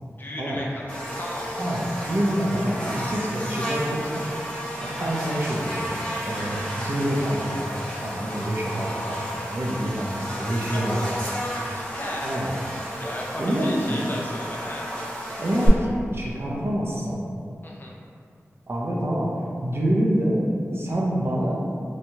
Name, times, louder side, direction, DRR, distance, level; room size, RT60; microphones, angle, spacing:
voice 1, 0.2-1.5 10.6-10.8 11.7-12.3 13.0-14.9 17.6-17.9, left 1 dB, 40° left, -3 dB, 0.4 m, -35 dB
Buzz, 0.9-15.7, equal, 20° left, 0.8 m, -32 dB
voice 2, 1.6-4.3 4.8-5.9 6.2-11.2 12.2-12.5 13.4-14.0 15.4-17.2 18.7-20.5 20.7-21.6, equal, 50° right, -4 dB, 0.5 m, -26 dB
3.0 x 2.2 x 2.7 m, 2.4 s
wide cardioid pair, 55°, 5 cm